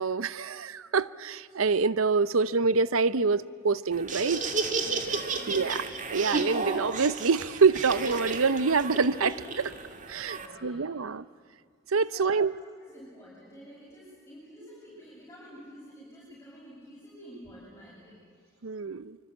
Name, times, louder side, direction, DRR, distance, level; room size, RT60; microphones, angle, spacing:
voice 1, 0.0-4.4 5.5-5.8 6.1-9.7 10.1-11.3 11.9-12.5 18.6-19.2, right 4 dB, 80° right, 17 dB, 0.7 m, -26 dB
Laughter, 3.9-10.5, right 3 dB, 40° right, 2.3 m, -33 dB
voice 2, 4.8-5.8 10.3-11.0 12.1-18.6, equal, 15° left, -7 dB, 7.6 m, -50 dB
26.0 x 25.0 x 8.6 m, 2.2 s
head